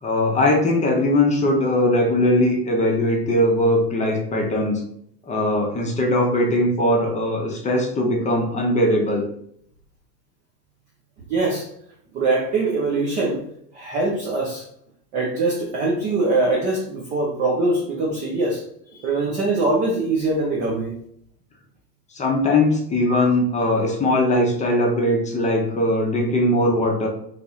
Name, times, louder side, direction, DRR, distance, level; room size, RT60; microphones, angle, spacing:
voice 1, 0.0-4.8 5.3-9.2 22.1-27.1, left 1 dB, 15° left, 0 dB, 0.7 m, -20 dB
voice 2, 11.3-11.7 12.1-13.4 13.7-14.7 15.1-18.6 18.9-21.0 23.1-23.3, right 2 dB, 20° right, -3 dB, 0.3 m, -23 dB
2.9 x 2.7 x 3.5 m, 0.68 s
hypercardioid pair, 95°, 50 cm